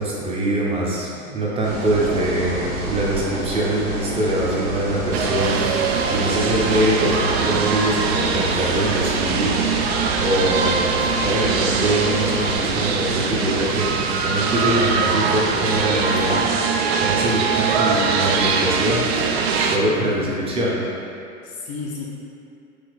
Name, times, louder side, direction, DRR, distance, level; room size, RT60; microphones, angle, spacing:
voice 1, 0.0-9.5 9.9-10.9 11.2-13.9 14.2-20.8, right 1 dB, 15° right, -5 dB, 0.7 m, -23 dB
sound 1, 1.6-12.9, right 1 dB, 65° right, 1.1 m, -29 dB
sound 2, 5.1-19.8, right 5 dB, 50° right, 0.4 m, -22 dB
voice 2, 19.9-20.4 21.4-22.1, left 4 dB, 30° left, -3 dB, 0.5 m, -32 dB
4.7 x 2.8 x 3.2 m, 2.5 s
figure-of-eight pair, 100°, 43 cm